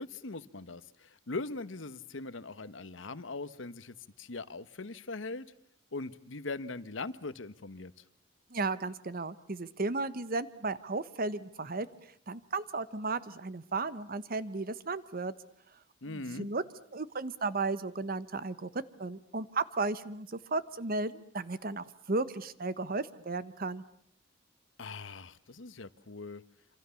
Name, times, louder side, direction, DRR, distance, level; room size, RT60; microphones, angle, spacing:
voice 1, 0.0-5.5 5.9-8.0 16.0-16.5 24.8-26.4, left 3 dB, 75° left, 15 dB, 1.1 m, -41 dB
voice 2, 8.5-15.3 16.1-16.6 16.9-23.8, right 3 dB, 50° right, 15 dB, 1.1 m, -34 dB
27.0 x 26.0 x 7.0 m, 0.64 s
head